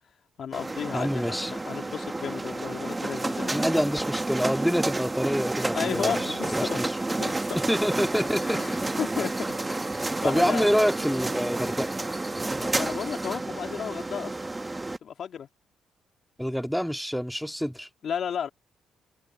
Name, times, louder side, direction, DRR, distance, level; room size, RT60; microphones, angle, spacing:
voice 1, 0.4-3.7 5.7-6.8 7.2-7.5 8.4-8.7 9.0-10.6 12.6-14.5 15.0-15.5 18.0-18.5, left 8 dB, 60° left, 3.2 m, -33 dB
sound 1, 0.5-15.0, right 2 dB, 15° right, 1.5 m, -30 dB
voice 2, 0.9-1.5 3.5-7.0 7.6-8.8 10.2-12.0 16.4-17.9, equal, ahead, 2.1 m, -27 dB
cardioid pair, 90°, 0 cm